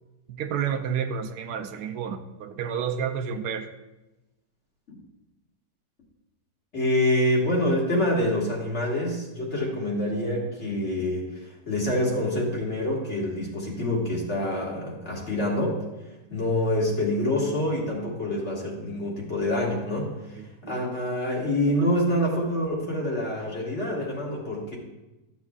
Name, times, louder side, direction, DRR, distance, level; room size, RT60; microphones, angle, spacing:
voice 1, 0.3-3.7 20.4-20.7, right 7 dB, 80° right, 6 dB, 1.1 m, -30 dB
voice 2, 6.7-15.8 16.3-24.8, left 1 dB, 45° left, -3 dB, 2.1 m, -26 dB
13.5 x 7.1 x 2.4 m, 1.0 s
omnidirectional pair, 1.7 m